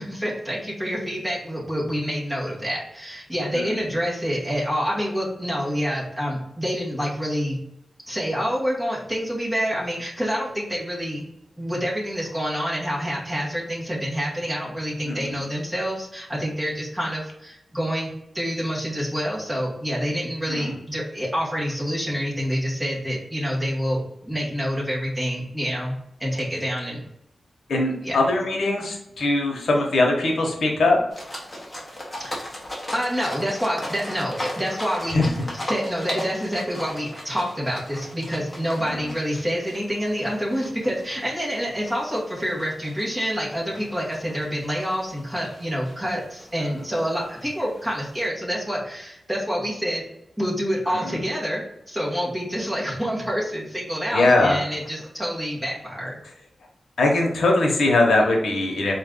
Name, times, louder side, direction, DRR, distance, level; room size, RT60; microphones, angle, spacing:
voice 1, 0.0-7.6 8.1-11.2 11.6-18.1 18.3-27.0 28.0-28.2 32.2-32.4 32.9-35.2 35.7-50.0 50.4-56.2, equal, 10° right, -5 dB, 1.3 m, -27 dB
voice 2, 15.0-15.4 20.5-20.8 27.7-31.0 35.1-35.3 38.8-39.0 46.7-46.8 50.9-51.2 54.1-54.6 57.0-58.9, left 2 dB, 85° left, 0 dB, 0.9 m, -21 dB
sound 1, 31.1-48.3, left 1 dB, 15° left, 1.0 m, -38 dB
4.0 x 2.5 x 3.7 m, 0.81 s
wide cardioid pair, 170°, 0 cm